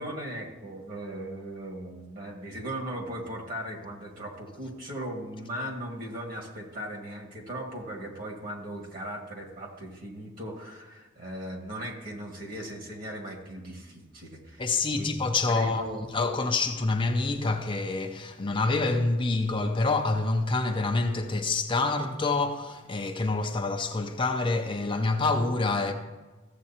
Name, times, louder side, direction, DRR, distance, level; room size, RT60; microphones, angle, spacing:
voice 1, 0.0-15.1 15.5-16.0, right 1 dB, 45° right, 1.9 m, -38 dB
voice 2, 14.6-25.9, left 3 dB, 25° left, 0.5 m, -27 dB
14.5 x 7.6 x 2.8 m
head